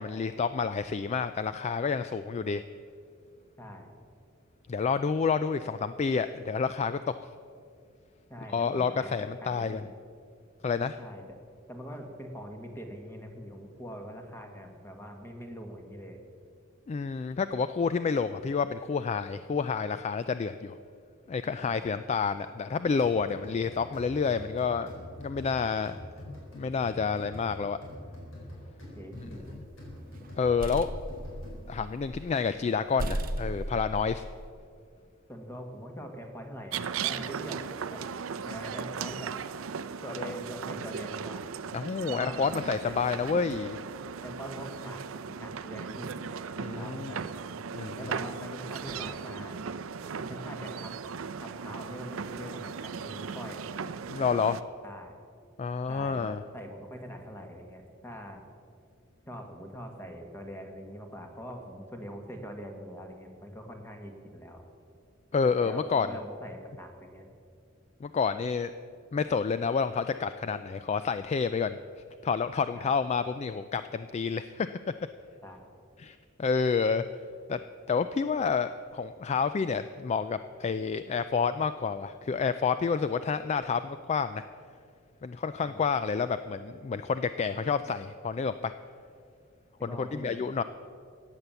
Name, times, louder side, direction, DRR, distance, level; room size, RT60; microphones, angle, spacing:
voice 1, 0.0-2.6 4.7-7.2 8.5-9.8 10.6-11.0 16.9-20.8 21.3-26.0 26.3-27.8 29.2-29.6 30.4-30.9 31.7-34.2 41.7-43.8 46.6-47.1 47.7-48.1 54.1-54.6 55.6-56.4 65.3-66.1 68.0-68.7 69.1-71.8 72.2-74.8 76.0-77.0 77.5-77.6 77.9-84.4 85.2-88.7 89.8-90.6, left 5 dB, 30° left, 12 dB, 0.3 m, -29 dB
voice 2, 3.6-4.0 8.3-9.1 9.4-9.9 11.0-11.4 11.7-16.2 21.7-22.0 28.9-29.5 35.3-37.6 37.9-38.0 38.4-39.3 40.0-41.5 42.1-42.5 42.8-43.0 44.2-46.2 46.6-47.3 47.9-49.6 50.1-51.0 51.4-53.7 54.8-55.1 55.9-58.5 59.3-64.7 65.6-67.3 72.7-72.9 75.4-75.7 85.6-85.8 89.8-90.4, equal, 10° left, 4 dB, 1.6 m, -43 dB
sound 1, 23.0-31.9, left 1 dB, 70° left, 4.5 m, -45 dB
sound 2, 29.2-29.8 30.2-32.4 32.7-32.8 33.0-34.5, right 1 dB, 45° right, 0.7 m, -36 dB
sound 3, 36.7-54.6, right 6 dB, 85° right, 0.5 m, -37 dB
14.5 x 9.1 x 7.0 m, 2.3 s
head